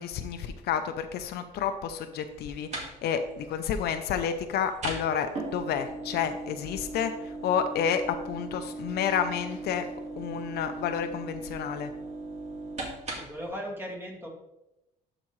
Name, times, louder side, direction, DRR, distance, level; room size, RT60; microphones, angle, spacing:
voice 1, 0.0-9.9 10.2-11.9, left 8 dB, 70° left, 8 dB, 0.7 m, -30 dB
sound 1, 2.3-13.5, right 2 dB, 40° right, 1.9 m, -39 dB
voice 2, 13.1-14.3, equal, 15° right, -1 dB, 2.2 m, -37 dB
12.0 x 5.0 x 3.1 m, 0.93 s
cardioid pair, 110°, 17 cm